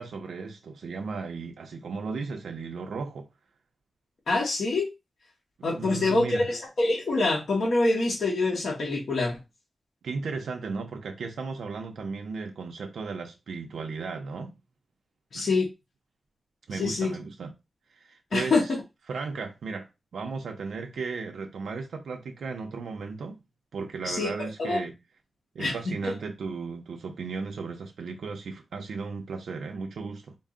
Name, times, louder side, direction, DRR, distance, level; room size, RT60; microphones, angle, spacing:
voice 1, 0.0-3.3 5.7-6.5 10.0-14.6 15.3-15.5 16.7-17.5 17.9-18.5 19.1-19.9 20.1-23.4 23.7-24.9 25.5-30.4, right 4 dB, 85° right, 0.6 m, -35 dB
voice 2, 4.3-4.9 5.6-9.4 15.3-15.7 16.7-17.1 18.3-18.8 24.0-24.8 25.6-26.1, left 2 dB, 60° left, 1.0 m, -26 dB
4.5 x 2.1 x 3.6 m
wide cardioid pair, 110°, 0 cm